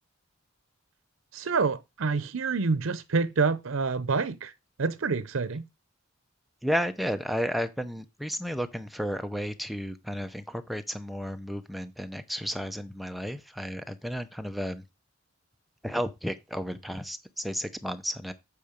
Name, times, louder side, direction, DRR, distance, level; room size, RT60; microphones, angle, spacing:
voice 1, 1.3-4.5 4.8-5.6, right 4 dB, 90° right, 0.7 m, -27 dB
voice 2, 6.6-14.8 15.8-18.3, equal, ahead, 0.7 m, -32 dB
8.4 x 5.0 x 5.1 m
head